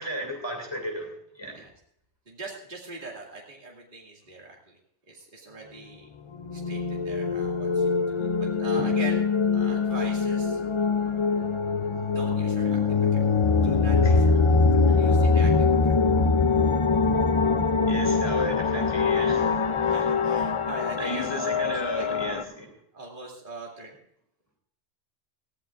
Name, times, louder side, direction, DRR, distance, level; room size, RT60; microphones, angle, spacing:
voice 1, 0.0-1.6 8.8-8.9 14.0-14.3 14.9-15.2 17.9-19.6 20.0-20.1 21.0-22.7, equal, 20° left, 1 dB, 2.8 m, -34 dB
voice 2, 2.3-4.7 5.1-6.1 6.5-9.2 9.5-10.6 12.1-13.2 13.6-14.2 15.0-15.9 19.8-22.1 22.9-23.9, right 3 dB, 45° right, -2 dB, 2.4 m, -41 dB
sound 1, 6.4-22.4, left 4 dB, 40° left, 0.4 m, -23 dB
20.5 x 15.0 x 2.5 m, 0.71 s
omnidirectional pair, 1.2 m